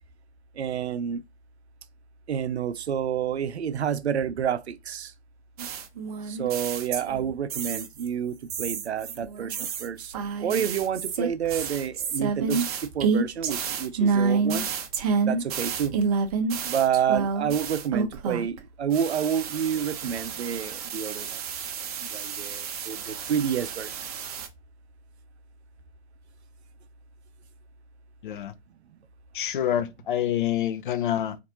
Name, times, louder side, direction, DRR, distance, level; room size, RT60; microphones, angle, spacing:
voice 1, 0.5-1.2 2.3-5.1 6.2-10.1 10.4-14.7 15.3-16.0 16.6-21.4 21.8-24.0, right 8 dB, 80° right, 0.5 m, -29 dB
sound 1, 5.6-8.1 8.5-18.6 18.9-24.5, right 5 dB, 35° right, 0.6 m, -29 dB
voice 2, 28.2-28.5 29.3-31.4, left 11 dB, 50° left, 0.6 m, -27 dB
4.0 x 2.5 x 2.8 m
figure-of-eight pair, 125°, 33 cm